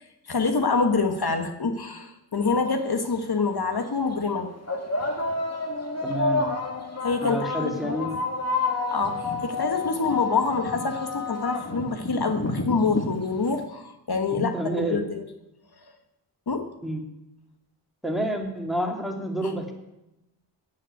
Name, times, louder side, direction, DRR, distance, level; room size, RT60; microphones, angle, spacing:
voice 1, 0.3-4.5 7.0-8.0 8.9-15.2 16.5-16.7, left 4 dB, 60° left, 6 dB, 1.4 m, -26 dB
sound 1, 2.6-2.7 3.6-3.8 4.7-13.6, left 3 dB, 35° left, 2.1 m, -29 dB
voice 2, 6.0-6.5 7.2-8.1 14.2-15.0 16.8-17.0 18.0-19.7, right 1 dB, ahead, 2 dB, 2.6 m, -29 dB
16.0 x 7.6 x 9.3 m, 0.91 s
wide cardioid pair, 110°, 43 cm